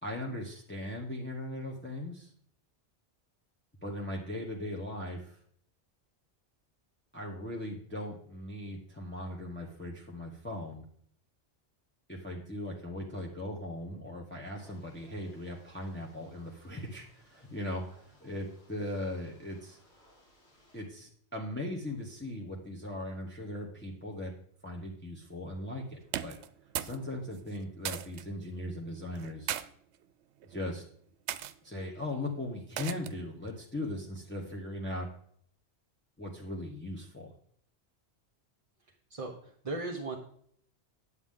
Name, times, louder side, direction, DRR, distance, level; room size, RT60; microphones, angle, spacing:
voice 1, 0.0-2.3 3.8-5.4 7.1-10.8 12.1-19.8 20.7-24.3 24.6-26.4 26.8-29.5 30.4-30.8 31.6-35.1 36.2-37.3, left 1 dB, 10° left, -2 dB, 1.1 m, -39 dB
sound 1, 14.5-20.8, equal, 85° left, 3.3 m, -63 dB
sound 2, 26.0-27.0 27.3-28.3 29.2-29.7 30.4-30.7 31.3-31.5 32.8-33.2, right 11 dB, 80° right, 0.8 m, -37 dB
voice 2, 39.1-40.2, right 3 dB, 35° right, 0 dB, 1.0 m, -37 dB
9.3 x 8.1 x 3.7 m, 0.62 s
omnidirectional pair, 1.1 m